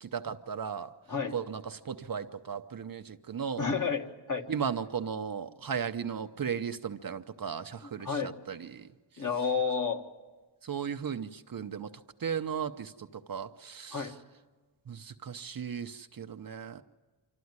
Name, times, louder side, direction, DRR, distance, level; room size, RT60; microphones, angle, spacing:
voice 1, 0.0-0.9 1.3-3.7 4.5-8.9 10.6-11.9 12.2-14.1 14.9-16.8, right 7 dB, 45° right, 8 dB, 0.8 m, -36 dB
voice 2, 3.6-4.4 7.8-8.3 9.2-10.0 13.9-14.1, left 5 dB, 40° left, 4 dB, 1.7 m, -31 dB
26.5 x 13.0 x 9.6 m, 1.3 s
wide cardioid pair, 135°, 46 cm